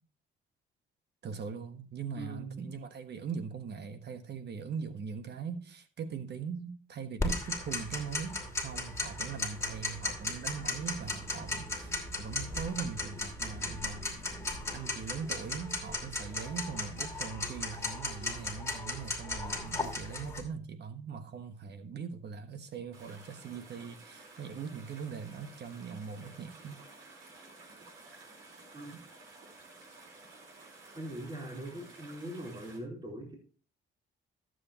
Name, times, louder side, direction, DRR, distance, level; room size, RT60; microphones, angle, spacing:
voice 1, 1.2-14.1 14.7-26.8, right 6 dB, 55° right, 1.3 m, -41 dB
voice 2, 2.2-2.8 28.7-28.9 30.9-33.4, right 1 dB, 25° right, 4.0 m, -41 dB
Tick-tock, 7.2-20.4, left 2 dB, 15° left, 2.7 m, -36 dB
sound 1, 22.9-32.8, right 3 dB, 80° right, 4.3 m, -53 dB
14.0 x 7.7 x 2.9 m
cardioid pair, 90°, 20 cm